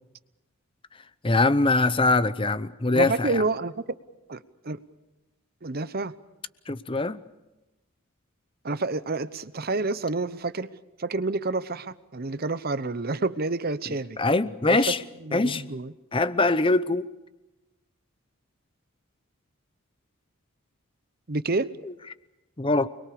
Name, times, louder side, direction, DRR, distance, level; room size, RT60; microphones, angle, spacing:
voice 1, 1.2-3.4 6.7-7.2 14.2-15.0 15.3-15.6 16.1-17.1 22.6-22.9, left 2 dB, 25° left, 0.8 m, -22 dB
voice 2, 2.9-3.8 4.3-4.8 5.6-6.1 8.6-10.7 11.0-14.2 14.7-14.8 15.2-15.9 21.3-21.7, right 3 dB, 45° right, 0.9 m, -29 dB
29.0 x 22.0 x 6.9 m
head